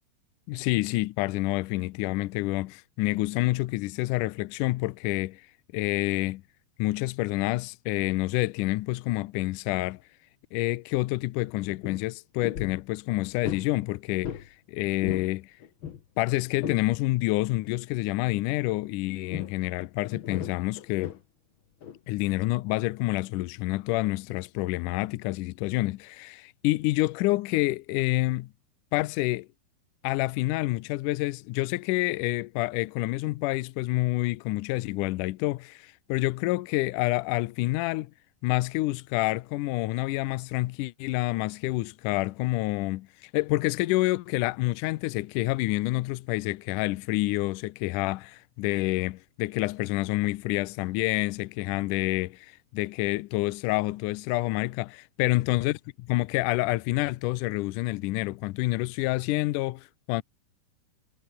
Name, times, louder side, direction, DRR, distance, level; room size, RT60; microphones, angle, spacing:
voice 1, 0.5-5.4 5.7-6.4 6.8-10.0 10.5-14.4 14.7-15.5 16.2-21.2 22.1-28.5 28.9-29.5 30.0-38.1 38.4-60.2, left 19 dB, 85° left, 1.8 m, -28 dB
sound 1, 11.2-11.3 11.5-12.0 12.4-12.8 13.4-13.7 14.2-14.5 14.8-15.3 15.6-16.9 17.4-17.6 19.3-19.6 20.1-21.2 21.8-22.0, left 8 dB, 60° left, 1.3 m, -37 dB
omnidirectional pair, 4.5 m